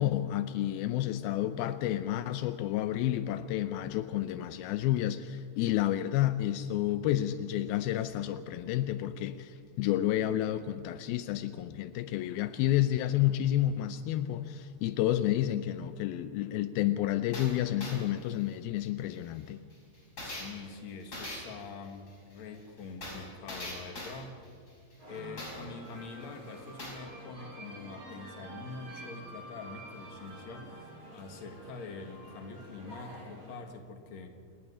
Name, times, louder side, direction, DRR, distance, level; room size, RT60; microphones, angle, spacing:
voice 1, 0.0-19.6, left 13 dB, 85° left, 11 dB, 2.1 m, -30 dB
sound 1, 12.3-12.4 12.7-12.8 17.3-25.9 26.2-26.3 26.6-26.9, left 1 dB, 20° left, 5.6 m, -42 dB
voice 2, 20.2-24.4 25.1-34.3, left 4 dB, 50° left, 5 dB, 2.6 m, -45 dB
sound 2, 25.0-33.6, right 1 dB, 20° right, 5.2 m, -48 dB
28.0 x 11.5 x 9.8 m, 2.2 s
omnidirectional pair, 5.1 m